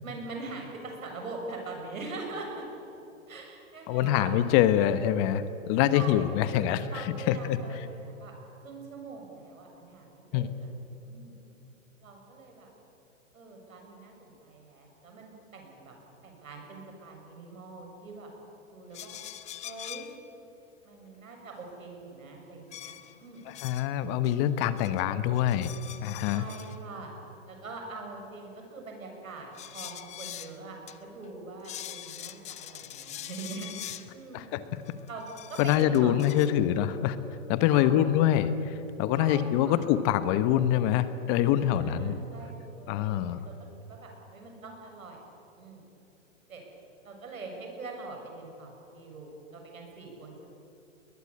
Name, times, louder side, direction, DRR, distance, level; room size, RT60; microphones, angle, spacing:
voice 1, 0.0-2.6 3.3-4.3 5.9-8.3 8.6-10.7 11.0-11.4 12.0-12.7 13.3-16.0 16.2-18.3 18.7-19.2 19.6-20.1 20.8-23.5 26.3-27.1 27.5-34.6 35.1-35.2 35.5-36.7 37.7-38.1 39.1-39.9 41.6-43.5 43.8-45.2 45.6-45.8 46.5-46.6 47.0-50.5, right 3 dB, 85° right, 2 dB, 7.4 m, -43 dB
voice 2, 3.9-7.6 10.3-10.5 23.6-25.7 26.0-26.4 34.3-34.6 35.6-37.2 37.5-42.1 42.9-43.4, left 11 dB, 35° left, 12 dB, 1.1 m, -25 dB
sound 1, 18.9-20.2 22.7-23.9 24.2-25.0 25.3-26.8 29.5-30.6 30.9-31.0 31.2-31.3 31.6-34.1 34.9-36.5, left 12 dB, 15° left, 0.8 m, -43 dB
21.5 x 21.0 x 8.7 m, 3.0 s
hypercardioid pair, 135°, 40 cm